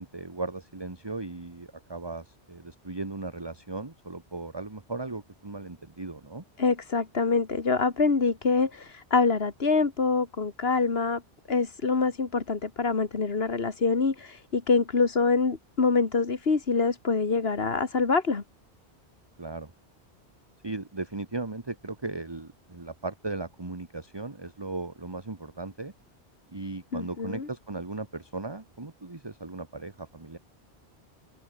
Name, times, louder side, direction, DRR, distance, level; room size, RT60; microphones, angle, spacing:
voice 1, 0.0-6.4 19.4-19.7 20.6-25.9 26.5-30.4, right 3 dB, 20° right, 1.6 m, -37 dB
voice 2, 6.6-11.2 11.5-18.4 26.9-27.5, left 4 dB, 60° left, 2.2 m, -25 dB
omnidirectional pair, 1.1 m